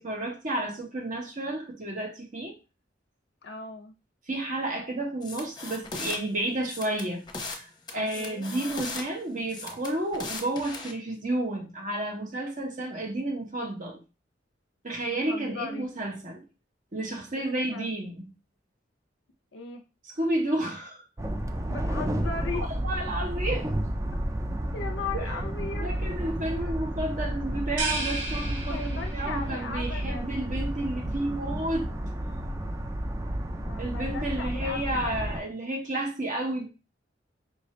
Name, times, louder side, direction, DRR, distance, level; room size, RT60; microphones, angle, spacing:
voice 1, 0.0-2.5 4.3-7.2 7.5-14.0 14.8-16.4 16.9-18.3 20.1-21.0 22.5-23.7 25.1-25.4 25.8-31.9 33.8-36.7, right 1 dB, 45° right, 1.1 m, -31 dB
voice 2, 3.4-3.9 7.9-8.5 15.1-15.9 17.3-17.9 19.5-19.8 21.7-22.7 24.7-26.0 28.7-30.4 33.6-35.3, left 4 dB, 70° left, 0.5 m, -38 dB
sound 1, 5.2-6.2 6.6-7.6 7.9-9.0 9.5-10.9, left 3 dB, 25° left, 0.7 m, -37 dB
sound 2, 21.2-35.4, right 1 dB, 15° right, 0.4 m, -31 dB
sound 3, 27.8-29.5, right 3 dB, 80° right, 1.2 m, -33 dB
4.8 x 2.6 x 3.2 m
head